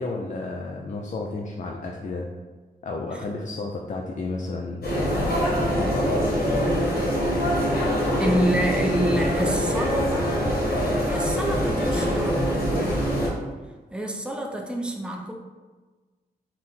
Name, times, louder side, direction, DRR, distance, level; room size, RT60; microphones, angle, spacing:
voice 1, 0.0-2.3 2.8-6.4, left 3 dB, 50° left, 0 dB, 0.4 m, -32 dB
sound 1, 4.8-13.3, equal, 70° left, 1.1 m, -24 dB
voice 2, 8.2-10.5 11.1-13.3 13.9-15.3, right 1 dB, 5° right, 1 dB, 0.6 m, -28 dB
4.3 x 2.0 x 3.7 m, 1.3 s
cardioid pair, 65°, 17 cm